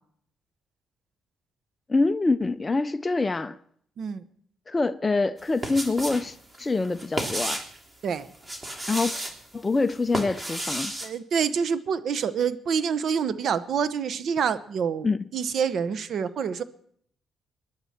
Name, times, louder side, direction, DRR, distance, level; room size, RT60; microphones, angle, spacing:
voice 1, 1.9-3.6 4.7-7.6 8.9-9.1 9.5-10.9 15.0-15.2, left 3 dB, 25° left, 0.5 m, -25 dB
sound 1, 5.4-6.3 6.5-7.8 8.3-9.3 9.9-11.1, right 1 dB, 20° right, 3.3 m, -32 dB
voice 2, 11.0-16.6, right 7 dB, 60° right, 1.0 m, -27 dB
22.0 x 11.0 x 4.4 m
cardioid pair, 90°, 0 cm